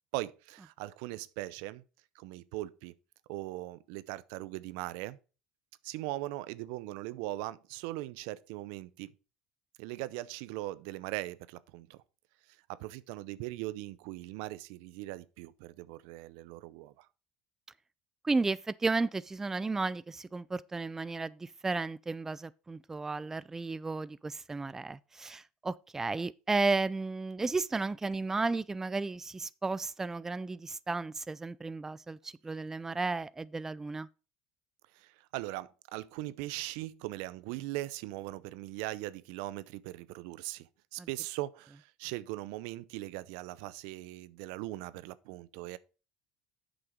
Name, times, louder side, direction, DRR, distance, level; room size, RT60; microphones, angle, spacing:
voice 1, 0.1-1.8 2.2-2.9 3.3-5.2 5.8-9.1 9.8-12.0 12.7-17.1 34.9-45.8, right 17 dB, 80° right, 0.6 m, -40 dB
voice 2, 18.2-34.1 41.0-41.1, right 3 dB, 15° right, 0.3 m, -33 dB
7.8 x 6.1 x 5.0 m
supercardioid pair, 110°, 3 cm